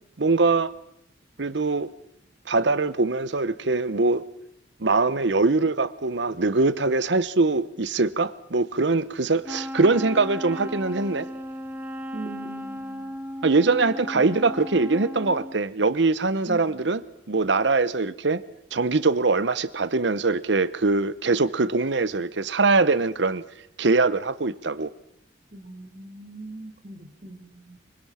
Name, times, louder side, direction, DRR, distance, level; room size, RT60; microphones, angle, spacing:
voice 1, 0.2-0.7 1.4-1.9 2.5-4.2 4.8-11.3 13.4-17.0 17.3-18.4 18.7-23.4 23.8-24.9, right 3 dB, 70° right, 0.9 m, -22 dB
Wind instrument woodwind instrument, 9.4-15.6, equal, 10° right, 1.1 m, -35 dB
voice 2, 12.1-13.1 14.1-14.3 16.5-16.9 25.5-27.8, right 2 dB, 40° right, 1.9 m, -40 dB
24.5 x 22.5 x 5.8 m
head